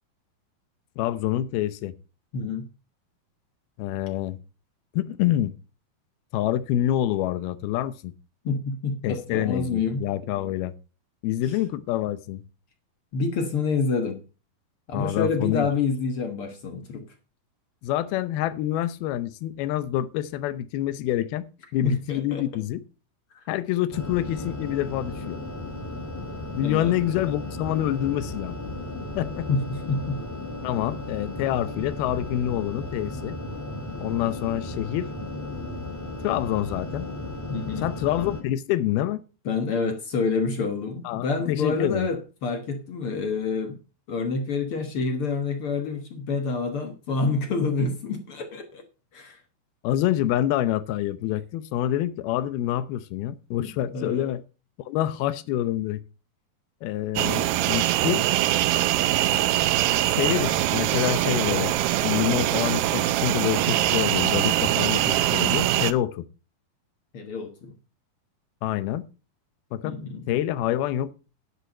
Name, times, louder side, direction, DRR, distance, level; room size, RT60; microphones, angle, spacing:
voice 1, 1.0-1.9 3.8-4.4 4.9-5.5 6.3-8.1 9.0-10.7 11.2-12.4 14.9-15.7 17.8-21.5 21.7-22.8 23.5-25.4 26.5-28.6 29.2-29.5 30.6-33.4 34.0-35.1 36.2-37.1 37.8-39.2 41.0-42.1 49.8-54.4 54.9-56.0 56.8-58.2 60.1-66.3 68.6-69.1 69.7-70.0 70.3-71.1, left 13 dB, 90° left, 2.7 m, -27 dB
voice 2, 2.3-2.7 8.4-10.1 11.5-11.6 13.1-14.2 14.9-17.1 21.8-22.4 23.4-23.5 26.6-26.9 29.5-30.2 37.5-37.9 39.4-43.8 44.1-48.8 49.1-49.4 53.6-54.3 67.1-67.7 69.8-70.2, left 4 dB, 60° left, 1.5 m, -28 dB
sound 1, 23.9-38.4, left 2 dB, 10° left, 0.9 m, -35 dB
sound 2, 57.2-65.9, right 14 dB, 80° right, 2.4 m, -23 dB
10.5 x 8.2 x 5.4 m
omnidirectional pair, 4.3 m